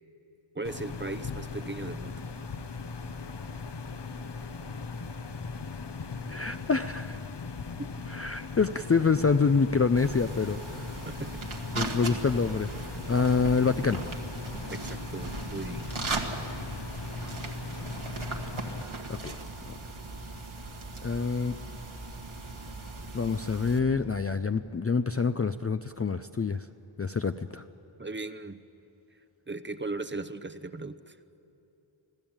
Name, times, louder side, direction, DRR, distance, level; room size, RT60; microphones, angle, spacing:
voice 1, 0.5-2.2 7.8-8.1 11.1-11.7 14.7-15.9 28.0-28.6 29.5-31.2, right 3 dB, 25° right, 11 dB, 0.8 m, -38 dB
sound 1, 0.6-18.8, left 4 dB, 55° left, 1.0 m, -39 dB
voice 2, 6.3-7.2 8.1-10.9 11.7-12.7 13.1-14.0 19.1-19.4 19.7-19.8 21.0-21.6 23.1-26.7 27.0-27.6, left 5 dB, 30° left, 9 dB, 0.5 m, -26 dB
sound 2, 10.0-23.8, right 3 dB, 70° right, 2.0 m, -38 dB
25.5 x 15.5 x 8.8 m, 2.9 s
wide cardioid pair, 70°, 49 cm